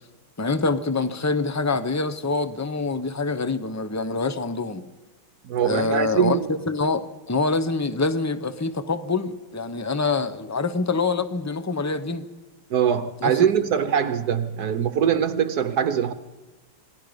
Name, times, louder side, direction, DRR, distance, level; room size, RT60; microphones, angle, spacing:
voice 1, 0.4-4.9 5.6-12.3 13.2-13.4, left 3 dB, 20° left, 0.5 m, -25 dB
voice 2, 5.4-6.5 12.7-16.1, right 8 dB, 65° right, 1.3 m, -22 dB
27.5 x 19.5 x 5.3 m
omnidirectional pair, 1.9 m